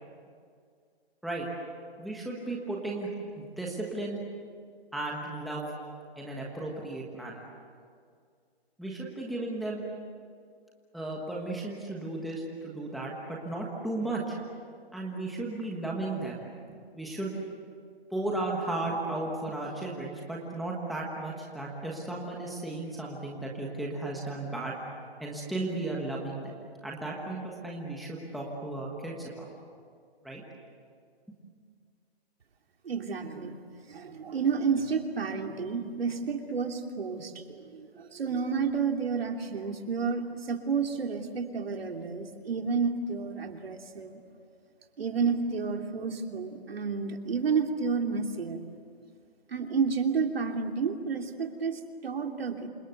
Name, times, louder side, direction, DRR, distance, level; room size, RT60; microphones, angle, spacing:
voice 1, 2.0-3.1 3.4-4.2 4.9-5.7 6.2-7.4 8.8-9.8 10.9-14.4 14.9-17.3 18.1-24.7 25.2-26.5 26.8-29.5 30.2-30.4, right 2 dB, ahead, -3 dB, 1.3 m, -35 dB
voice 2, 32.8-33.5 33.9-44.1 45.0-48.6 49.5-52.7, right 5 dB, 65° right, 4 dB, 3.1 m, -30 dB
28.0 x 26.0 x 8.0 m, 2.2 s
hypercardioid pair, 170°, 32 cm